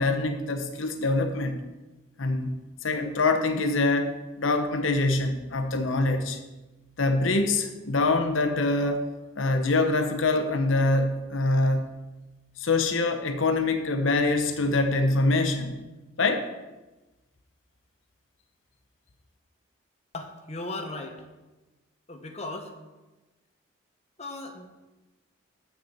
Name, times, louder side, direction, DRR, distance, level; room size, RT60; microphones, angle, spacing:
voice 1, 0.0-1.6 2.2-2.6 2.8-6.4 7.0-9.1 9.4-11.8 12.6-15.8 16.2-16.5, left 2 dB, 75° left, 7 dB, 0.9 m, -24 dB
voice 2, 20.1-21.2 22.1-22.7 24.2-24.8, left 2 dB, 30° left, 3 dB, 1.1 m, -37 dB
7.0 x 6.7 x 7.9 m, 1.1 s
head